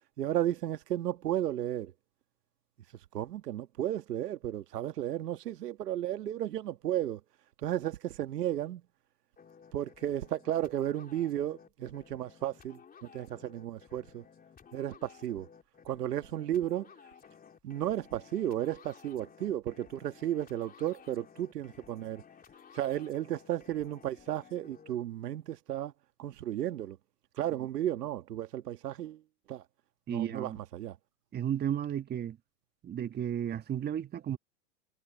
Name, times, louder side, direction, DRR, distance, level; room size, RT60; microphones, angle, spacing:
voice 1, 0.2-1.9 3.1-7.2 7.6-8.8 9.7-14.2 14.7-15.5 15.8-16.9 17.6-22.2 22.7-25.9 26.2-27.0 27.4-29.2 29.5-29.6 30.1-31.0, right 12 dB, 85° right, 1.5 m, -34 dB
sound 1, 9.4-25.0, left 7 dB, 20° left, 3.5 m, -56 dB
voice 2, 30.1-30.6 31.3-32.4 32.8-34.4, right 10 dB, 20° right, 1.5 m, -33 dB
hypercardioid pair, 120°, 46 cm